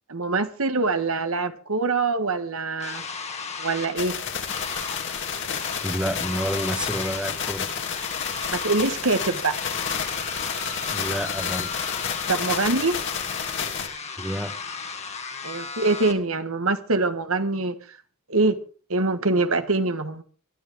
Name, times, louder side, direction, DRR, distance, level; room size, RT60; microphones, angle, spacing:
voice 1, 0.1-3.0 3.6-4.1 8.5-9.6 12.3-13.0 15.4-18.0 18.3-18.6 18.9-20.2, right 3 dB, 75° right, 1.6 m, -24 dB
sound 1, 2.8-16.1, left 5 dB, 30° left, 2.1 m, -35 dB
sound 2, 4.0-13.9, left 7 dB, 60° left, 2.9 m, -30 dB
voice 2, 5.8-7.7 10.9-11.8 14.2-14.6, equal, 5° right, 1.3 m, -29 dB
22.5 x 13.0 x 3.7 m
head